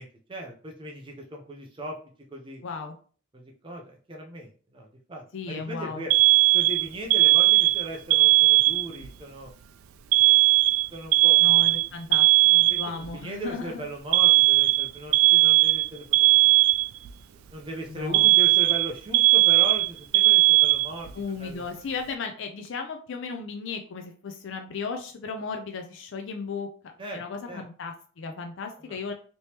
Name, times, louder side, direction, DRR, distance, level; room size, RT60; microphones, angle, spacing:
voice 1, 0.0-2.0 2.3-2.6 3.3-6.1 6.5-9.5 10.1-10.4 10.9-11.6 12.7-16.4 17.3-21.1 21.4-21.7 27.0-27.6 28.8-29.0, right 1 dB, 25° right, 1 dB, 0.5 m, -38 dB
voice 2, 2.6-2.9 5.3-6.0 11.4-13.8 17.9-18.3 21.1-26.7 27.1-29.1, left 4 dB, 60° left, 4 dB, 0.4 m, -35 dB
Alarm, 6.1-9.1 10.1-13.1 14.1-17.1 18.1-21.1, right 19 dB, 80° right, 0.3 m, -18 dB
3.3 x 2.9 x 2.8 m, 0.42 s
head